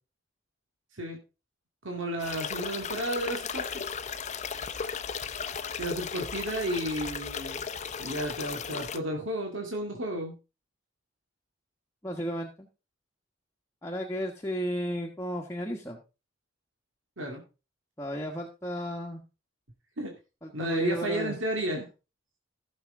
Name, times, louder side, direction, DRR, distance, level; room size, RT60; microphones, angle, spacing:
voice 1, 1.8-3.8 5.8-7.6 8.0-10.3 17.2-17.4 20.0-20.1 20.5-21.9, right 1 dB, 70° right, 1 dB, 2.2 m, -32 dB
sound 1, 2.2-9.0, left 6 dB, 35° left, 0.7 m, -35 dB
voice 2, 12.0-12.7 13.8-16.0 18.0-19.2 20.4-21.3, equal, 15° left, -1 dB, 1.3 m, -33 dB
15.5 x 6.5 x 3.7 m, 0.30 s
head